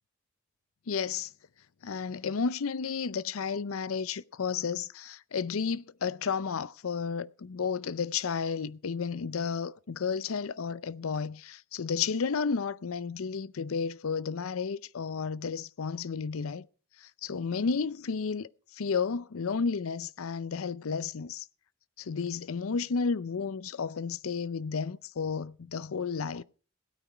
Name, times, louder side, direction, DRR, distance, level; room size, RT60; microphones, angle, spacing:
voice 1, 0.9-1.3 1.8-16.7 17.0-21.5 22.0-26.4, left 5 dB, 80° left, 0.6 m, -32 dB
17.0 x 9.2 x 4.5 m
head